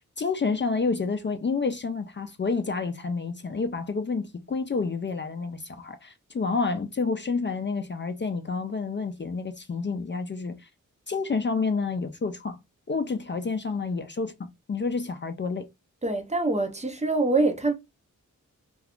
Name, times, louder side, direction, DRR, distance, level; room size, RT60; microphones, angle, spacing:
voice 1, 0.0-10.7 11.1-12.6 12.9-14.3 14.7-15.7, left 4 dB, 35° left, 0.4 m, -29 dB
voice 2, 16.0-17.7, right 2 dB, 20° right, 0.5 m, -24 dB
2.3 x 2.3 x 3.5 m
wide cardioid pair, 75°, 32 cm